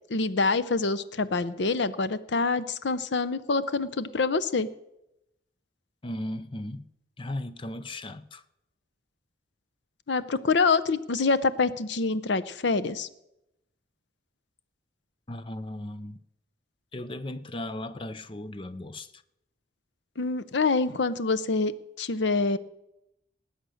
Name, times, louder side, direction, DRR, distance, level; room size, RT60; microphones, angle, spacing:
voice 1, 0.1-4.7 10.1-13.1 20.2-21.7 22.0-22.6, left 4 dB, 70° left, 0.7 m, -26 dB
voice 2, 6.0-6.9 7.2-8.4 15.3-16.2 16.9-19.2, left 1 dB, 25° left, 0.6 m, -36 dB
19.0 x 8.1 x 6.4 m
head